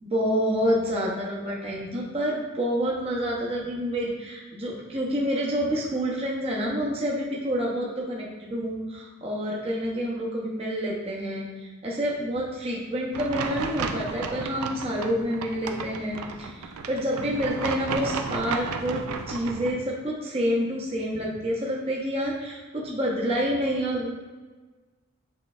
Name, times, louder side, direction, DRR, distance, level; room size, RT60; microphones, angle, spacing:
voice 1, 0.0-24.1, equal, 30° right, -3 dB, 0.6 m, -28 dB
sound 1, 13.1-19.7, right 4 dB, 90° right, 0.4 m, -33 dB
6.3 x 3.2 x 2.4 m, 1.3 s
head